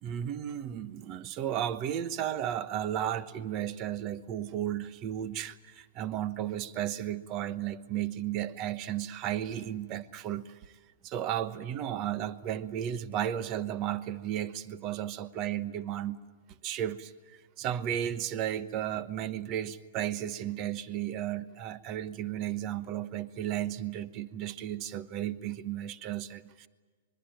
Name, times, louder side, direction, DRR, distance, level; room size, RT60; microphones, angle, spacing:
voice 1, 0.0-10.7 11.0-16.2 16.6-17.1 17.6-26.7, right 11 dB, 30° right, 1.0 m, -34 dB
25.5 x 22.5 x 9.0 m
hypercardioid pair, 160°, 0 cm